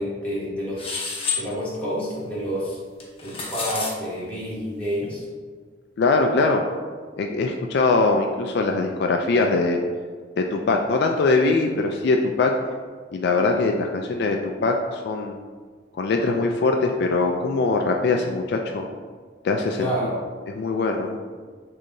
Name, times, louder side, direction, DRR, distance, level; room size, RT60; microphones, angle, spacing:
voice 1, 0.0-2.8 3.2-5.2 19.8-20.2, equal, 10° left, -8 dB, 1.3 m, -29 dB
sound 1, 0.8-1.4 3.0-3.9, left 5 dB, 30° left, 0.8 m, -28 dB
voice 2, 6.0-6.6 7.2-9.8 10.4-12.5 13.1-15.4 16.0-18.8 19.4-19.9 20.6-21.2, left 3 dB, 60° left, 3 dB, 0.3 m, -22 dB
6.2 x 2.8 x 2.6 m, 1.5 s
head